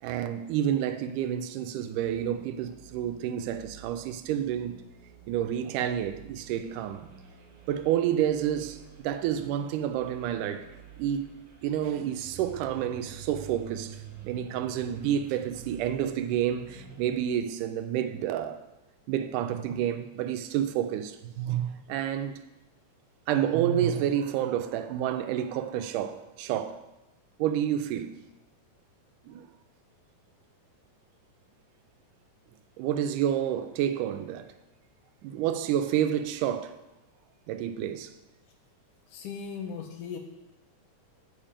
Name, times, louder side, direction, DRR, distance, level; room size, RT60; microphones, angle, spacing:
voice 1, 0.0-4.8 5.3-7.1 7.7-10.7 11.0-11.3 11.6-18.7 19.1-22.4 23.3-26.8 27.4-28.1 29.3-29.5 32.8-34.5 35.2-36.8 37.5-38.1, right 10 dB, 90° right, 2.1 m, -29 dB
sound 1, 1.9-17.2, right 7 dB, 65° right, 1.0 m, -48 dB
voice 2, 39.1-40.2, left 6 dB, 85° left, 2.6 m, -37 dB
7.3 x 7.2 x 5.0 m
omnidirectional pair, 3.6 m